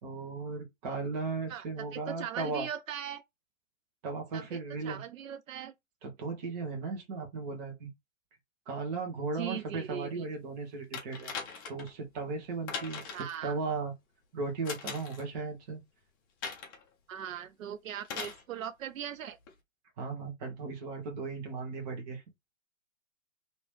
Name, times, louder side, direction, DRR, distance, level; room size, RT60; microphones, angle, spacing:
voice 1, 0.0-2.7 4.0-5.0 6.0-7.9 8.7-11.3 11.7-13.9 14.3-15.8 20.0-22.2, right 4 dB, 30° right, 1.3 m, -36 dB
voice 2, 1.9-3.2 4.3-5.7 9.3-10.2 13.1-13.6 17.1-19.4, right 9 dB, 80° right, 0.5 m, -39 dB
sound 1, 10.9-11.9 12.7-13.4 14.6-15.2 16.4-16.8 18.0-18.4 19.5-19.6, left 5 dB, 15° left, 0.5 m, -40 dB
3.1 x 2.9 x 3.2 m
hypercardioid pair, 135°, 40 cm